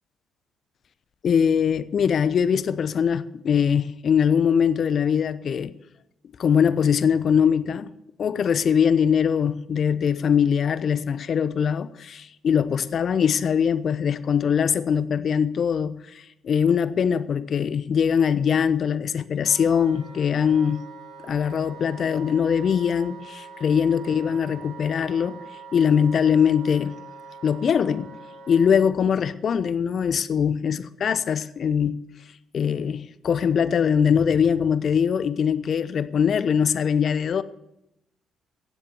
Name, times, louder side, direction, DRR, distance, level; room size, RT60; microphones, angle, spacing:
voice 1, 1.2-5.7 6.4-7.9 8.2-16.0 16.4-20.8 21.2-25.4 25.7-27.0 27.4-28.1 28.5-32.0 32.5-37.4, left 7 dB, 55° left, 0.8 m, -22 dB
Wind instrument woodwind instrument, 19.4-28.7, right 5 dB, 70° right, 2.3 m, -43 dB
17.0 x 7.7 x 6.9 m
hypercardioid pair, 45°, 0 cm